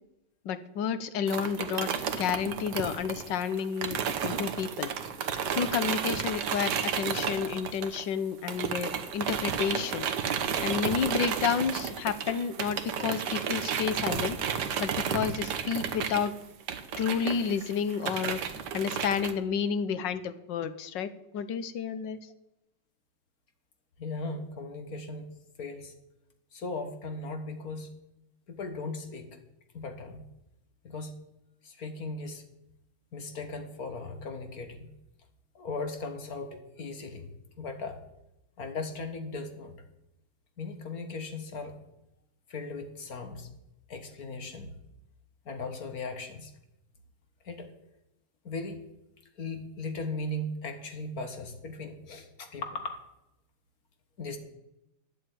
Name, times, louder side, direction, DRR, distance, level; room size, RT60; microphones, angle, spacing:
voice 1, 0.4-1.9 2.2-4.9 5.5-10.1 10.6-14.4 14.8-16.3 17.0-18.4 18.7-22.2, left 7 dB, 70° left, 13 dB, 1.4 m, -30 dB
sound 1, 1.3-8.2 8.5-19.3, right 7 dB, 65° right, 1.6 m, -32 dB
voice 2, 24.0-25.3 25.6-25.9 26.5-27.9 28.5-29.3 29.7-30.3 30.8-31.1 31.6-32.4 33.1-34.9 35.6-37.3 37.6-38.0 38.6-39.8 40.6-41.8 42.5-43.5 43.9-44.7 45.5-46.5 47.4-47.7 48.5-48.8 49.4-53.1 54.2-54.4, left 3 dB, 50° left, 6 dB, 1.9 m, -37 dB
10.5 x 7.9 x 9.2 m, 0.88 s
omnidirectional pair, 2.1 m